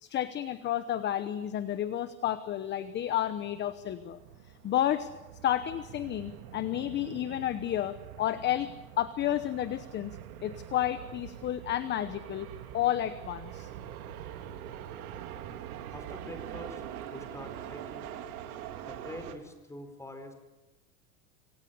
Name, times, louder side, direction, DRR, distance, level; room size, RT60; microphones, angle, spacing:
voice 1, 0.0-4.2 4.6-5.1 5.4-13.7, left 11 dB, 25° left, 13 dB, 1.0 m, -31 dB
sound 1, 2.2-19.4, right 10 dB, 85° right, 3.4 m, -44 dB
voice 2, 15.9-16.8 17.1-18.1 18.5-20.3, left 1 dB, 5° left, 7 dB, 4.5 m, -45 dB
26.0 x 26.0 x 7.0 m, 1.1 s
supercardioid pair, 150°, 43 cm